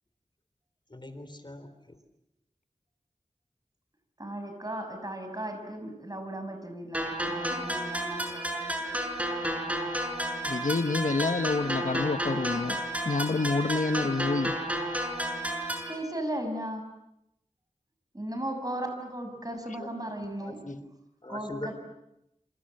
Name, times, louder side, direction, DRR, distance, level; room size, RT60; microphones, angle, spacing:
voice 1, 0.9-2.0 19.8-19.9 20.4-20.8 21.2-21.7, left 1 dB, 35° left, 10 dB, 3.9 m, -41 dB
voice 2, 4.2-9.0 15.9-16.9 18.1-20.6 21.3-21.7, right 1 dB, 30° right, 6 dB, 6.5 m, -36 dB
sound 1, 6.9-15.9, right 1 dB, 10° right, 6.1 m, -32 dB
voice 3, 10.5-14.5, left 3 dB, 80° left, 10 dB, 1.2 m, -28 dB
28.0 x 26.5 x 7.8 m, 0.84 s
wide cardioid pair, 60°, 13 cm